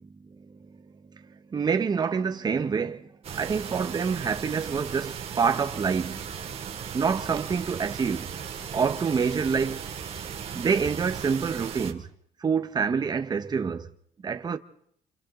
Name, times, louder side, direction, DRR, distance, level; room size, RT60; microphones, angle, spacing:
voice 1, 0.3-0.8 1.1-6.3 6.9-8.3 8.7-12.1 12.4-13.9 14.2-14.6, right 6 dB, 30° right, 1.4 m, -27 dB
sound 1, 3.2-11.9, right 7 dB, 45° right, 3.5 m, -37 dB
29.0 x 27.5 x 4.0 m
cardioid pair, 145°, 15 cm